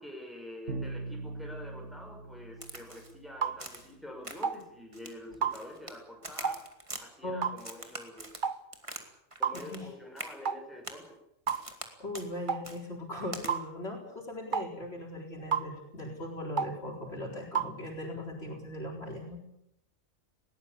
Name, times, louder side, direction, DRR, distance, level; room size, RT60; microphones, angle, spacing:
voice 1, 0.0-6.6 7.0-8.3 9.4-11.2, left 1 dB, ahead, 1 dB, 6.4 m, -46 dB
Bowed string instrument, 0.7-3.5, right 3 dB, 65° right, 2.5 m, -41 dB
Crack, 2.6-3.1 3.6-3.9 4.2-4.6 4.9-6.0 6.2-7.0 7.6-9.1 9.3-9.9 10.2-10.3 10.8-11.1 11.5-11.9 12.1-12.3 12.6-12.8 13.3-13.5, right 1 dB, 25° right, 2.5 m, -43 dB
sound 1, 3.4-3.6 4.4-4.6 5.4-5.6 6.4-6.6 7.4-7.6 8.4-8.6 9.4-9.6 10.5-10.6 11.5-11.7 12.5-12.6 13.5-13.7 14.5-14.7 15.5-15.7 16.6-16.8 17.6-17.7, right 6 dB, 40° right, 1.2 m, -30 dB
voice 2, 9.5-9.9 12.0-19.4, left 1 dB, 50° left, 0 dB, 4.7 m, -39 dB
20.5 x 18.0 x 8.6 m, 0.77 s
omnidirectional pair, 1.3 m